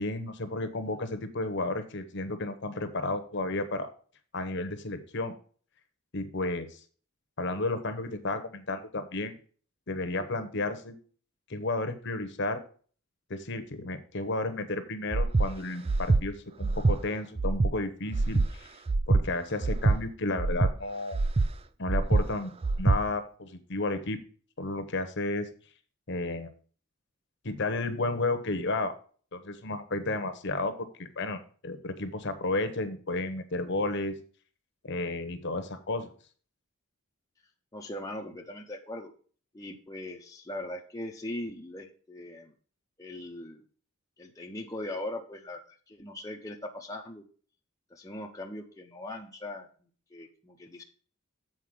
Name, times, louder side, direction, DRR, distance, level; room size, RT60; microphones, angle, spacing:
voice 1, 0.0-3.9 4.3-5.3 6.1-6.8 7.4-9.4 9.9-10.9 11.5-12.6 13.3-18.7 19.1-21.2 21.8-24.2 24.6-25.5 26.1-26.5 27.4-28.9 29.3-34.2 34.8-36.1, left 2 dB, 50° left, 9 dB, 1.0 m, -32 dB
Breathing, 15.1-15.5 15.9-16.2 16.6-17.0 17.4-17.7 18.1-18.5 18.9-19.2 19.6-20.0 20.4-20.7 21.1-21.5 21.9-22.2 22.6-23.0, right 3 dB, 25° right, 0.3 m, -24 dB
voice 2, 37.7-39.1 39.5-42.5 43.0-43.6 44.2-47.2 47.9-50.8, left 1 dB, 15° left, 1 dB, 0.7 m, -40 dB
7.6 x 4.5 x 6.3 m, 0.42 s
head